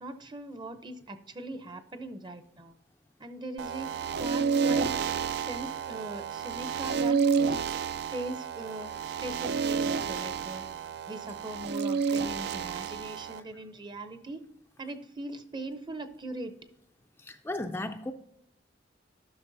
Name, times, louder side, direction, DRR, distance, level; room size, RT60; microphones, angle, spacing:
voice 1, 0.0-2.7 3.2-4.9 5.4-7.2 7.4-7.6 8.1-8.9 9.2-10.6 11.1-14.4 14.8-16.5, right 2 dB, 25° right, 10 dB, 0.6 m, -40 dB
sound 1, 3.6-13.4, right 5 dB, 60° right, 0.3 m, -30 dB
voice 2, 17.2-18.1, left 1 dB, 10° left, 5 dB, 0.3 m, -35 dB
11.0 x 6.2 x 2.6 m, 0.76 s
head